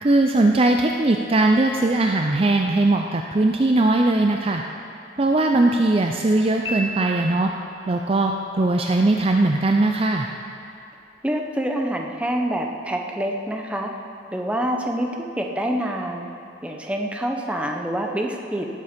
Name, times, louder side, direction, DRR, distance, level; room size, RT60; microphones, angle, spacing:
voice 1, 0.0-4.6 5.2-7.5 7.9-10.3, right 2 dB, 30° right, 3 dB, 0.5 m, -19 dB
Piano, 6.6-7.8, right 1 dB, 25° left, 1.1 m, -32 dB
voice 2, 11.2-13.9 14.3-16.3 16.6-18.7, right 1 dB, 5° right, 2 dB, 0.9 m, -26 dB
18.0 x 8.3 x 5.2 m, 2.7 s
head